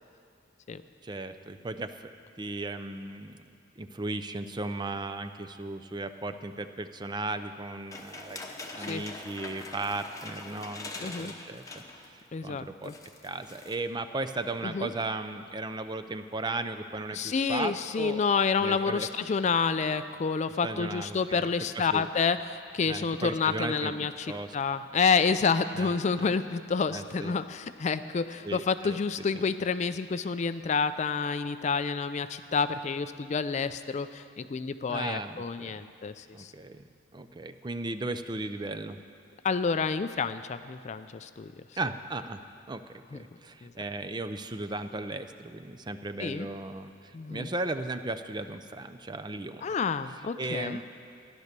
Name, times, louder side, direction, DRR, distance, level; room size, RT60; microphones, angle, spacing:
voice 1, 1.0-2.0 2.4-3.4 3.8-11.8 12.1-12.9 13.2-18.2 18.6-19.1 20.6-21.5 21.7-22.0 22.9-24.5 25.7-26.3 26.9-27.3 28.4-29.0 29.3-29.4 34.9-35.8 36.3-39.0 41.8-42.4 42.7-49.7 50.4-50.8, right 2 dB, 20° right, 10 dB, 0.5 m, -36 dB
sound 1, 7.9-12.2 12.5-12.6 12.8-13.8, left 3 dB, 15° left, 1.0 m, -43 dB
voice 2, 11.0-11.3 12.3-12.9 14.6-14.9 17.1-36.5 39.4-41.5 43.1-43.2 43.6-43.7 46.2-46.5 47.1-47.5 49.6-50.8, left 5 dB, 35° left, 12 dB, 0.3 m, -29 dB
14.5 x 10.5 x 6.7 m, 2.4 s
head